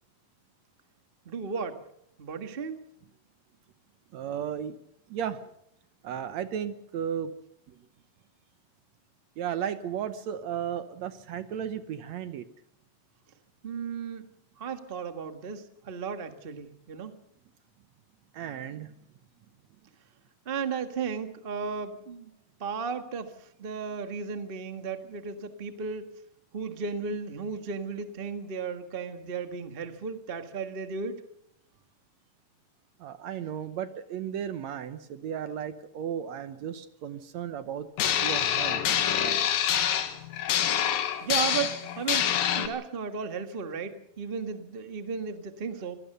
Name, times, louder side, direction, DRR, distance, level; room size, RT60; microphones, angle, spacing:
voice 1, 1.2-1.8 2.2-2.9 13.6-14.3 14.6-17.2 20.4-22.3 22.6-26.1 26.5-31.2 41.2-46.0, right 5 dB, 40° right, 8 dB, 0.8 m, -35 dB
voice 2, 4.1-4.8 5.1-5.4 6.0-7.3 7.7-7.8 9.4-12.5 18.3-18.9 33.0-37.9 38.2-38.8 39.2-39.6, right 9 dB, 65° right, 12 dB, 1.9 m, -34 dB
sound 1, 38.0-42.7, left 9 dB, 90° left, 3.2 m, -26 dB
25.0 x 18.0 x 6.7 m, 0.75 s
omnidirectional pair, 3.9 m